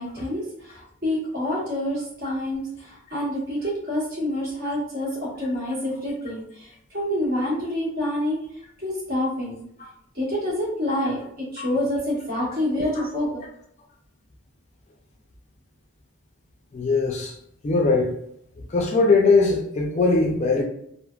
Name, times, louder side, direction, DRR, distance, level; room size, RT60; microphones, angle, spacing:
voice 1, 0.0-8.4 8.8-9.6 10.1-13.4, left 1 dB, 50° right, -6 dB, 1.2 m, -27 dB
voice 2, 16.7-17.4 17.6-18.2 18.7-20.6, left 3 dB, 35° left, 1 dB, 0.3 m, -20 dB
3.2 x 2.0 x 2.2 m, 0.71 s
head